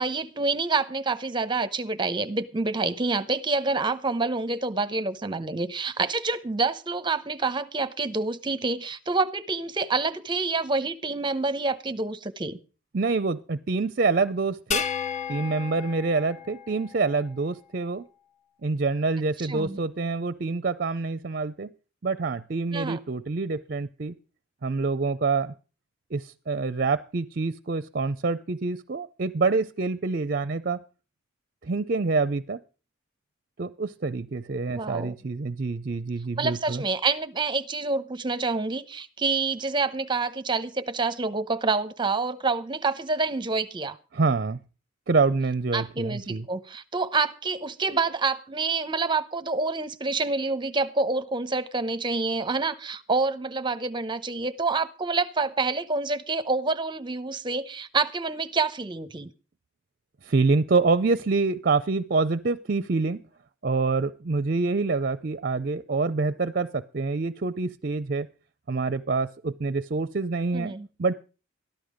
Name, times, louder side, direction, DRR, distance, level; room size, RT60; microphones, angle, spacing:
voice 1, 0.0-12.6 19.5-19.8 22.7-23.0 34.7-35.1 36.4-44.0 45.7-59.3 70.5-70.9, right 3 dB, 25° right, 13 dB, 0.8 m, -27 dB
voice 2, 12.9-14.8 15.3-18.0 18.6-21.7 22.0-24.1 24.6-25.5 26.1-30.8 31.6-32.6 33.6-36.8 44.1-44.6 45.1-46.5 60.2-63.2 63.6-68.3 68.7-71.1, right 3 dB, 50° right, 14 dB, 0.5 m, -26 dB
sound 1, 14.7-17.3, left 7 dB, 35° left, 0.9 m, -33 dB
13.5 x 11.5 x 5.0 m, 0.35 s
head